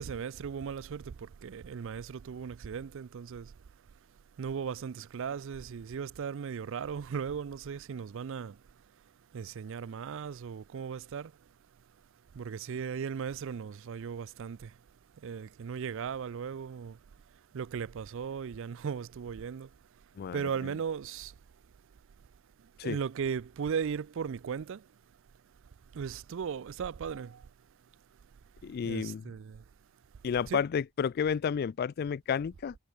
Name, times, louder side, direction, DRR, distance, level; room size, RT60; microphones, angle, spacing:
voice 1, 0.0-3.5 4.4-8.6 9.3-11.3 12.3-14.7 15.2-17.0 17.5-19.7 20.3-21.3 22.8-24.8 25.9-27.5 28.8-29.6 30.5-30.6, right 6 dB, 65° right, 0.4 m, -37 dB
voice 2, 20.2-20.5 22.8-23.0 28.6-29.2 30.2-32.8, left 7 dB, 45° left, 0.3 m, -31 dB
head